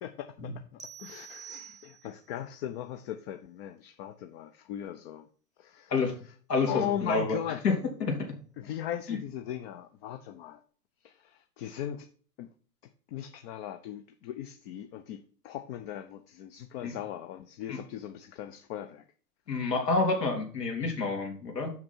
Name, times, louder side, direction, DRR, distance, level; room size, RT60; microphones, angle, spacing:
voice 1, 0.0-5.3 5.6-5.9 6.7-7.6 8.6-10.6 11.0-12.1 12.4-12.5 13.1-19.0, left 11 dB, 40° left, 0.7 m, -38 dB
sound 1, 0.8-2.3, right 9 dB, 15° right, 0.9 m, -47 dB
voice 2, 6.5-7.4 7.6-7.7 8.0-8.1 9.1-9.2 16.8-16.9 17.7-17.8 19.5-21.7, left 3 dB, 80° left, 3.1 m, -28 dB
6.3 x 5.9 x 4.5 m
hypercardioid pair, 110°, 48 cm